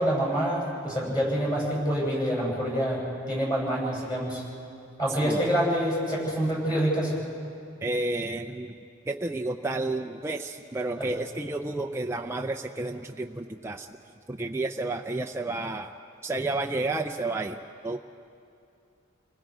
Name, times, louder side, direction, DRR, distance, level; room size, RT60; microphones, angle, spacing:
voice 1, 0.0-4.4 5.0-7.2 11.0-11.1, equal, 20° left, -4 dB, 7.6 m, -26 dB
voice 2, 7.8-8.8 9.1-13.9 14.3-15.9 16.2-18.0, right 2 dB, 15° right, 2 dB, 0.5 m, -31 dB
29.0 x 20.5 x 4.9 m, 2.5 s
head